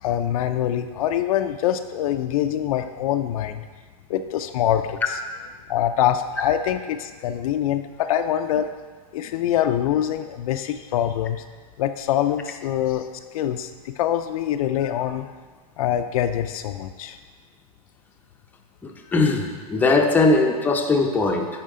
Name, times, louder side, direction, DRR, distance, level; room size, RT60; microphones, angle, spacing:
voice 1, 0.0-3.7 4.1-5.2 5.7-8.7 9.1-11.4 11.8-13.1 13.3-15.3 15.8-17.2, left 11 dB, 65° left, 8 dB, 0.4 m, -24 dB
voice 2, 18.8-21.5, left 3 dB, 10° left, 1 dB, 0.6 m, -20 dB
10.0 x 4.3 x 3.7 m, 1.5 s
hypercardioid pair, 135°, 20 cm